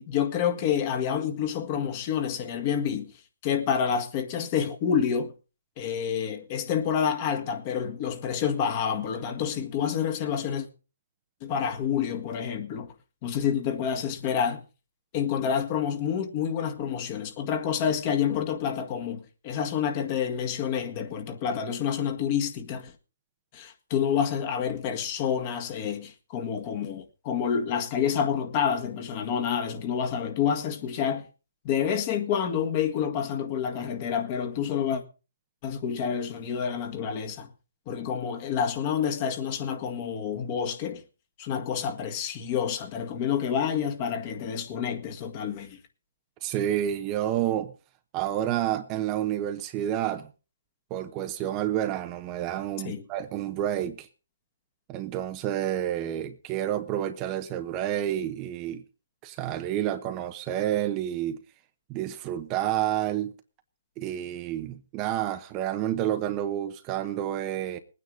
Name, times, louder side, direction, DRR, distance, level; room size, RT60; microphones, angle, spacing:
voice 1, 0.0-3.1 3.4-5.3 5.8-10.7 11.4-12.9 13.2-14.6 15.1-22.9 23.5-31.3 31.6-35.0 35.6-37.5 37.9-41.0 41.4-45.8 52.8-53.0, left 8 dB, 30° left, 1.8 m, -28 dB
voice 2, 46.4-47.7 48.1-50.3 50.9-54.1 54.9-58.8 59.2-61.4 61.9-63.4 64.0-67.8, right 11 dB, 25° right, 0.9 m, -29 dB
20.5 x 9.4 x 3.8 m
hypercardioid pair, 145°, 0 cm